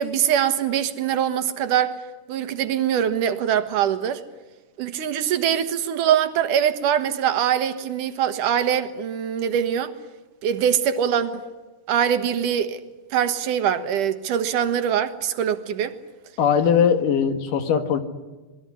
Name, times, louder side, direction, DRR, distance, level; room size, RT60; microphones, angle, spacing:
voice 1, 0.0-2.0 2.3-4.2 4.8-9.9 10.4-11.4 11.9-12.8 13.1-16.0, right 9 dB, 80° right, 2.9 m, -23 dB
voice 2, 16.4-18.0, left 7 dB, 85° left, 3.4 m, -20 dB
26.5 x 21.0 x 9.8 m
omnidirectional pair, 3.7 m